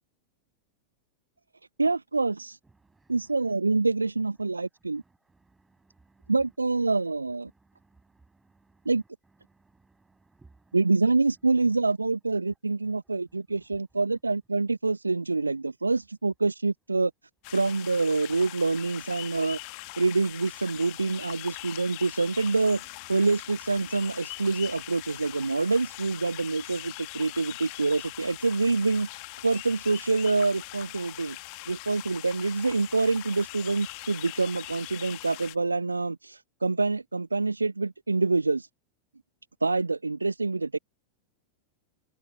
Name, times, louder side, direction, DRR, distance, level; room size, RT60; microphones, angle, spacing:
voice 1, 1.8-2.6 3.1-5.0 6.3-7.5 8.9-9.0 10.7-17.1 17.5-19.6 20.0-22.8 23.1-29.1 29.4-31.4 31.7-38.7 39.6-40.8, right 3 dB, 80° right, 0.6 m, -26 dB
voice 2, 2.8-3.2 4.6-4.7 5.0-6.3 7.5-8.9 9.5-10.8 13.0-13.1, right 3 dB, 10° right, 6.3 m, -62 dB
sound 1, 17.4-35.5, left 40 dB or more, 45° left, 1.6 m, -42 dB
figure-of-eight pair, 90°, 0 cm